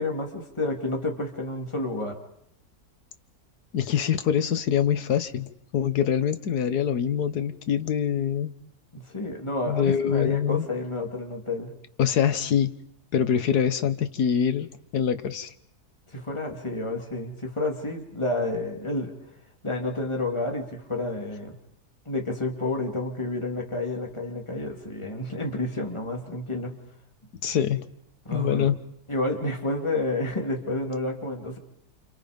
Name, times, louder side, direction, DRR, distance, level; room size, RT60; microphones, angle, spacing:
voice 1, 0.0-2.2 8.9-11.7 16.1-19.1 19.6-21.6 22.0-26.8 28.2-28.7 29.1-31.6, left 2 dB, 15° left, 2 dB, 3.0 m, -30 dB
voice 2, 3.7-8.5 9.7-10.7 12.0-12.7 13.1-14.7 14.9-15.5 27.4-27.8 28.3-28.7, left 8 dB, 75° left, 10 dB, 1.7 m, -24 dB
29.5 x 28.5 x 5.3 m, 0.73 s
omnidirectional pair, 1.7 m